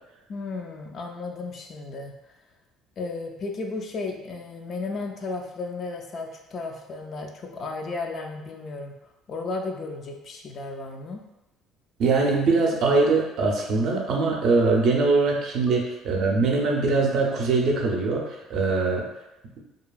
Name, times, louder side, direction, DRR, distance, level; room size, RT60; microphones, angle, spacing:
voice 1, 0.3-2.1 3.0-8.9 9.3-11.2 15.7-15.8, left 3 dB, 40° left, 2 dB, 0.4 m, -34 dB
voice 2, 12.0-19.0, right 3 dB, 55° right, 0 dB, 0.5 m, -22 dB
2.8 x 2.4 x 2.3 m, 0.95 s
cardioid pair, 130°, 0 cm